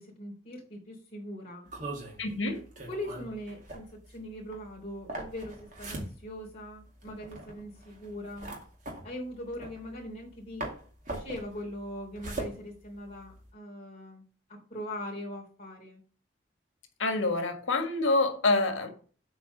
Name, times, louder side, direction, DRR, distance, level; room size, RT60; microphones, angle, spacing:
voice 1, 0.0-1.7 2.9-8.6 9.0-10.7 11.1-14.2 14.5-16.0, left 1 dB, 30° left, 3.4 m, -41 dB
sound 1, 1.7-10.3 10.6-13.5, right 2 dB, 45° right, 2.3 m, -41 dB
voice 2, 2.2-2.6 17.0-18.9, left 2 dB, 90° left, 1.7 m, -27 dB
8.0 x 4.3 x 6.6 m
head